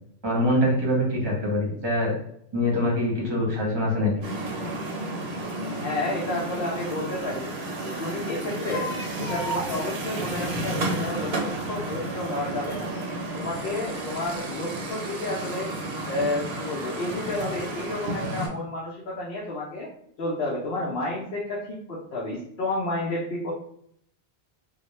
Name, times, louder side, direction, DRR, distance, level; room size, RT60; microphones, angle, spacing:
voice 1, 0.2-2.2 2.5-4.1, left 1 dB, 25° right, -2 dB, 0.8 m, -24 dB
sound 1, 4.2-18.5, right 2 dB, 80° right, 0.9 m, -32 dB
voice 2, 5.7-7.5 7.8-8.9 9.2-12.9 13.3-15.7 16.1-19.9 20.2-23.5, left 2 dB, 70° left, -5 dB, 0.8 m, -31 dB
sound 2, 6.8-13.5 14.0-14.8 15.1-15.2, equal, 30° left, 0.8 m, -40 dB
2.3 x 2.1 x 3.0 m, 0.68 s
omnidirectional pair, 1.0 m